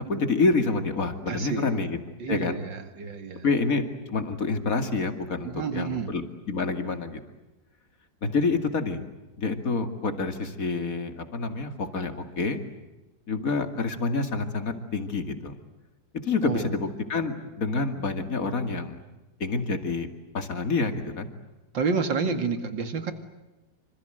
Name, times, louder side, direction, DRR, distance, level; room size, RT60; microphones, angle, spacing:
voice 1, 0.1-2.0 2.3-2.6 3.4-7.2 8.2-9.0 9.4-12.6 13.3-15.5 16.2-19.0 19.4-20.1 20.3-21.3, left 3 dB, 45° left, 7 dB, 2.7 m, -27 dB
voice 2, 1.3-1.8 2.2-3.5 5.4-6.1 16.4-16.8 21.7-23.1, right 5 dB, 75° right, 8 dB, 2.9 m, -29 dB
27.0 x 26.0 x 8.0 m, 1.0 s
omnidirectional pair, 2.0 m